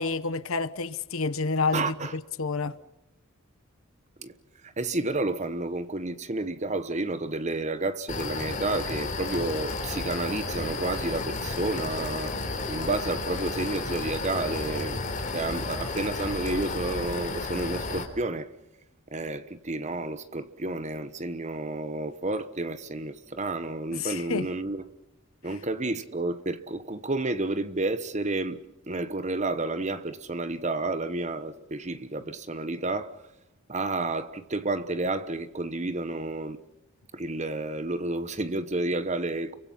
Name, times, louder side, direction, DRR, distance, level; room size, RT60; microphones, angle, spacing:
voice 1, 0.0-2.8 23.9-24.5, left 4 dB, 65° left, 1.0 m, -29 dB
voice 2, 1.7-2.1 4.2-4.3 4.6-12.3 12.7-15.0 15.3-18.5 19.1-24.8 25.4-33.2 33.7-36.6 37.1-39.5, right 2 dB, 30° right, 1.1 m, -30 dB
sound 1, 8.1-18.0, left 3 dB, 35° left, 4.0 m, -32 dB
29.5 x 24.0 x 5.7 m
head